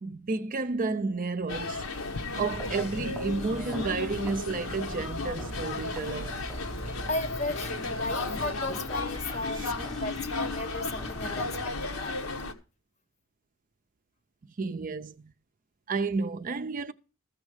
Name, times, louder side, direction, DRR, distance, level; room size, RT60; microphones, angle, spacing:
voice 1, 0.0-1.8 2.3-6.4 9.6-9.7 14.6-15.3 15.9-16.9, right 4 dB, 40° right, 0.5 m, -31 dB
sound 1, 1.5-12.5, left 3 dB, 85° left, 1.2 m, -34 dB
sound 2, 1.9-8.4, left 3 dB, 60° left, 0.6 m, -48 dB
sound 3, 2.4-11.7, right 1 dB, 5° left, 0.6 m, -42 dB
voice 2, 7.1-12.4, left 2 dB, 30° left, 0.8 m, -36 dB
14.0 x 6.3 x 4.8 m
head